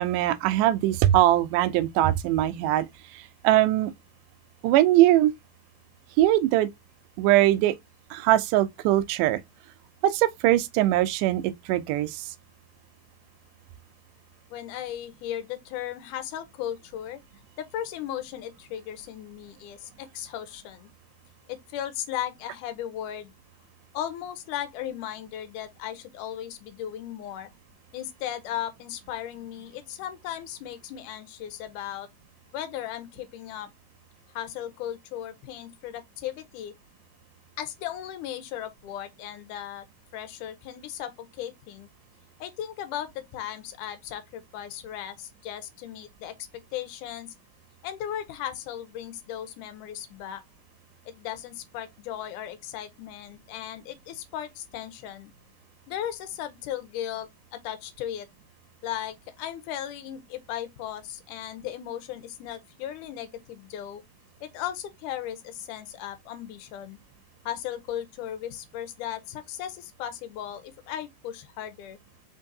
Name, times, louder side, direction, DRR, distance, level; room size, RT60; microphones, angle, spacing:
voice 1, 0.0-2.9 3.1-3.9 4.6-5.3 6.2-6.7 7.2-7.8 8.1-9.4 10.0-12.3, right 14 dB, 80° right, 2.0 m, -21 dB
voice 2, 14.5-17.2 17.6-20.9 21.5-23.3 23.9-27.5 27.9-32.1 32.5-33.7 34.3-36.7 37.6-39.9 40.1-41.9 42.4-47.3 47.8-50.4 51.1-55.3 55.9-58.3 58.8-64.0 64.4-67.0 67.5-72.0, left 11 dB, 80° left, 2.1 m, -36 dB
4.5 x 3.8 x 2.6 m
omnidirectional pair, 3.8 m